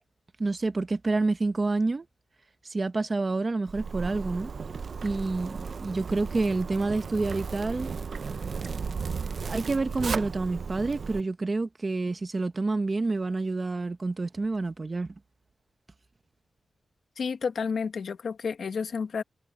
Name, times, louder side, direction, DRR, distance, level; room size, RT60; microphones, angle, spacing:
voice 1, 0.4-2.1 2.6-4.5 5.0-7.9 9.4-15.1, right 3 dB, 30° right, 1.0 m, -28 dB
Zipper (clothing), 3.7-11.2, right 5 dB, 50° right, 0.7 m, -35 dB
voice 2, 17.2-19.2, left 5 dB, 60° left, 1.6 m, -31 dB
wide cardioid pair, 150°, 0 cm